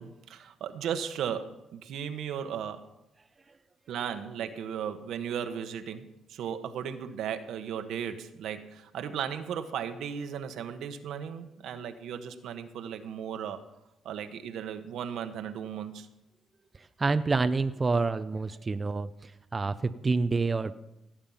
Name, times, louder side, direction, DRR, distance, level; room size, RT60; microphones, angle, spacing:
voice 1, 0.0-2.9 3.9-13.6 14.0-16.1, right 8 dB, 80° right, 9 dB, 1.2 m, -36 dB
voice 2, 16.8-20.7, right 3 dB, 30° right, 11 dB, 0.6 m, -28 dB
17.0 x 8.8 x 5.7 m, 0.89 s
cardioid pair, 90°, 0 cm